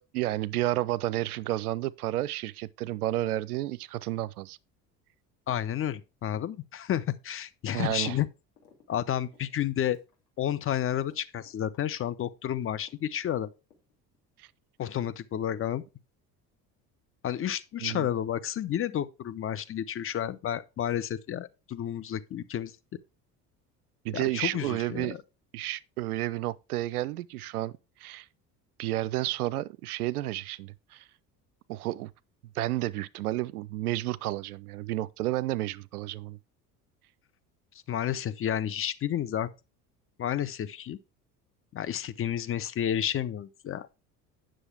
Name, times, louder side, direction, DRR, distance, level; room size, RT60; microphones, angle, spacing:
voice 1, 0.0-4.6 7.7-8.2 14.4-14.5 17.8-18.1 24.0-25.2 25.5-27.7 28.0-28.3 28.8-31.0 31.7-32.1 32.5-36.4, right 15 dB, 70° right, 0.6 m, -31 dB
voice 2, 5.5-8.3 8.9-10.0 10.4-13.5 14.8-15.8 17.2-22.7 24.1-25.2 37.9-39.5 40.2-41.0 41.7-43.9, left 10 dB, 30° left, 0.7 m, -31 dB
sound 1, 8.6-8.9 9.1-12.9 13.3-14.2, left 6 dB, 75° left, 2.6 m, -60 dB
9.7 x 6.3 x 4.5 m
figure-of-eight pair, 60°, 47 cm